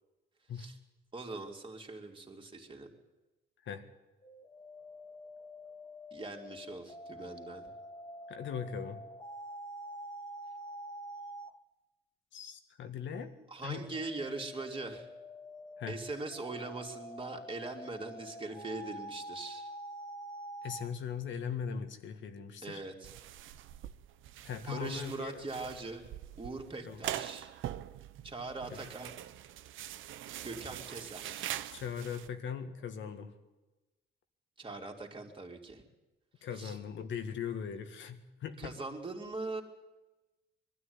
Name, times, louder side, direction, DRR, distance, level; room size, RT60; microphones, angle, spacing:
voice 1, 1.1-2.9 6.1-7.7 13.5-15.1 15.9-19.7 22.6-23.1 24.6-26.1 26.4-27.5 28.2-29.1 30.4-31.5 34.6-35.8 36.5-36.8 38.6-39.6, right 3 dB, 25° right, 1 dB, 3.2 m, -41 dB
sound 1, 4.2-11.6 13.6-20.9, equal, 20° left, 1.4 m, -47 dB
voice 2, 8.3-9.0 12.3-13.3 13.6-13.9 15.8-16.0 20.6-22.8 24.4-25.5 26.8-27.0 28.7-28.8 31.7-33.3 36.4-38.7, left 7 dB, 70° left, 7 dB, 1.9 m, -39 dB
sound 2, 23.0-32.3, right 12 dB, 80° right, 0.8 m, -43 dB
21.5 x 13.0 x 9.8 m, 1.1 s
cardioid pair, 90°, 20 cm